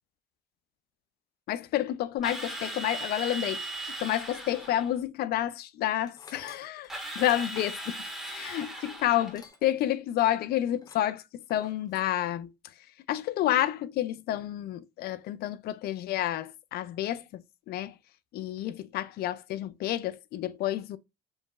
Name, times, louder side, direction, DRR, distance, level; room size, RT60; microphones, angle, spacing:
voice 1, 1.5-3.7 4.0-6.9 7.2-8.0 8.3-12.5 13.1-17.9 18.3-21.0, left 12 dB, 70° left, 0.4 m, -30 dB
Drill, 2.2-4.9 6.9-9.4, right 1 dB, 5° right, 1.6 m, -38 dB
Tools, 6.0-9.8 10.1-10.3 10.8-11.1 11.5-12.1, left 3 dB, 20° left, 0.8 m, -51 dB
4.7 x 2.9 x 2.3 m
cardioid pair, 110°, 17 cm